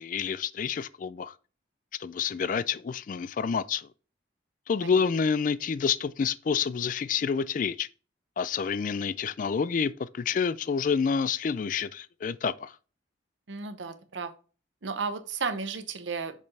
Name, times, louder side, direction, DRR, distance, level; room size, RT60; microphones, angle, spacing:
voice 1, 0.0-1.3 2.0-3.9 4.7-7.9 8.4-12.8, left 6 dB, 45° left, 0.3 m, -28 dB
voice 2, 13.5-14.3 14.8-16.4, right 5 dB, 85° right, 0.9 m, -34 dB
6.5 x 5.4 x 3.3 m
head